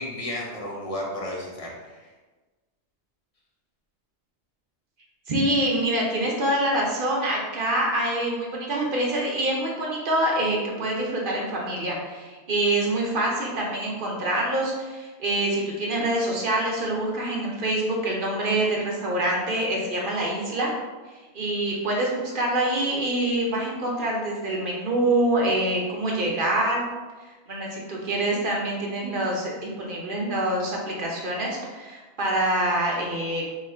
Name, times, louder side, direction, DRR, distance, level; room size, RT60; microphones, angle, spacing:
voice 1, 0.0-2.1, left 1 dB, 40° left, -3 dB, 0.6 m, -33 dB
voice 2, 5.3-20.7 21.1-26.8 27.2-33.5, right 1 dB, 55° right, -2 dB, 0.8 m, -26 dB
2.9 x 2.4 x 4.2 m, 1.3 s
omnidirectional pair, 1.2 m